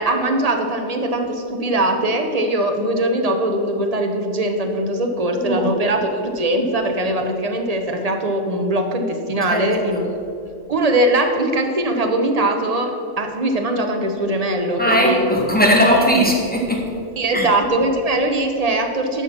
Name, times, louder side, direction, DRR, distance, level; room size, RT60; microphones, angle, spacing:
voice 1, 0.0-10.1 10.7-15.3 17.2-19.2, right 1 dB, 30° right, 4 dB, 1.0 m, -21 dB
voice 2, 5.4-5.7 9.5-10.0 14.8-16.8 17.3-17.5, equal, 5° left, -2 dB, 1.6 m, -18 dB
11.0 x 6.3 x 6.0 m, 2.5 s
omnidirectional pair, 1.4 m